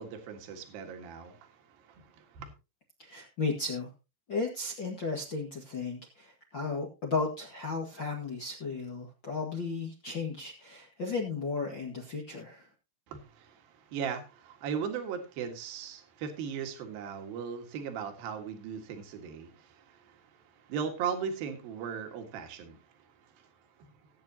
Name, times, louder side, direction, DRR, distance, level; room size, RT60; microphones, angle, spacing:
voice 1, 0.0-2.5 13.1-23.5 23.8-23.9, right 7 dB, 60° right, 5 dB, 3.3 m, -38 dB
voice 2, 3.0-3.9 4.3-12.7, left 4 dB, 50° left, -1 dB, 1.3 m, -34 dB
18.0 x 8.9 x 2.8 m, 0.28 s
omnidirectional pair, 5.1 m